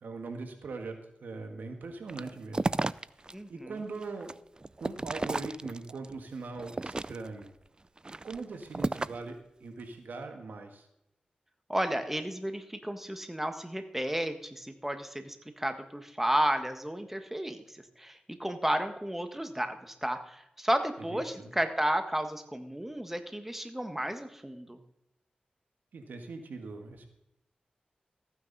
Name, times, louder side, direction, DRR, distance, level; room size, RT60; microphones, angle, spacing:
voice 1, 0.0-2.7 3.5-4.3 4.8-7.5 8.2-10.9 21.1-21.5 25.9-27.1, right 3 dB, 85° right, 5 dB, 1.7 m, -41 dB
sound 1, 2.1-3.3 3.8-6.1 6.6-7.4 8.0-9.3, right 2 dB, 30° right, 0.4 m, -33 dB
voice 2, 3.3-3.8 11.7-24.8, right 1 dB, 10° right, 7 dB, 1.6 m, -32 dB
14.5 x 9.4 x 4.1 m, 0.82 s
cardioid pair, 50°, 3 cm